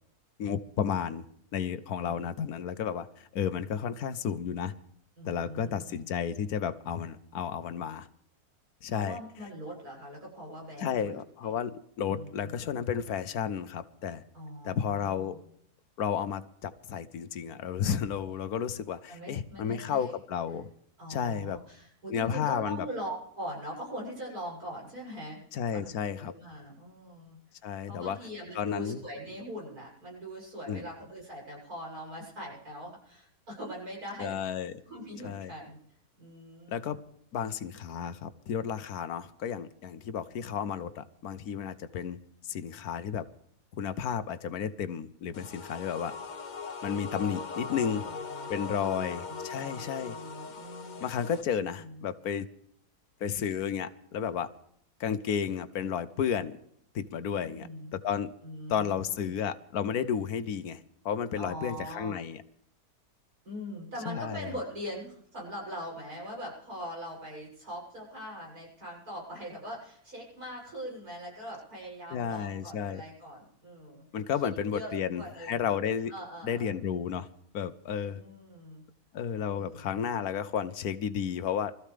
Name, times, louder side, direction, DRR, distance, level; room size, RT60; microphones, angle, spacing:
voice 1, 0.4-1.3 1.5-4.7 5.2-8.1 8.8-9.2 10.8-14.2 14.6-15.4 16.0-20.7 21.1-21.6 22.1-22.9 25.5-26.3 27.6-28.2 28.5-29.0 30.7-30.9 34.2-34.8 35.2-35.5 36.7-37.0 37.3-42.2 42.5-43.3 43.7-46.1 46.8-48.1 48.5-50.2 51.0-52.5 53.2-54.5 55.0-56.6 56.9-58.3 58.7-62.4 64.1-64.5 72.1-73.0 74.1-76.1 76.4-77.3 77.5-78.2 79.1-81.8, left 8 dB, 75° left, 13 dB, 1.3 m, -32 dB
voice 2, 5.2-6.0 8.9-11.2 11.4-11.6 12.1-12.6 14.3-15.4 19.1-20.1 21.0-25.4 25.7-25.9 26.2-27.4 27.9-34.4 34.8-35.8 36.2-37.0 47.6-51.1 51.8-52.1 57.3-57.9 58.4-59.3 61.3-62.2 63.4-74.0 74.4-74.9 75.2-75.7 76.1-76.7 78.1-78.8 79.5-80.0, equal, 75° right, -3 dB, 7.8 m, -42 dB
sound 1, 45.3-51.4, left 5 dB, 40° left, 0.8 m, -40 dB
24.5 x 14.5 x 3.4 m, 0.66 s
omnidirectional pair, 1.6 m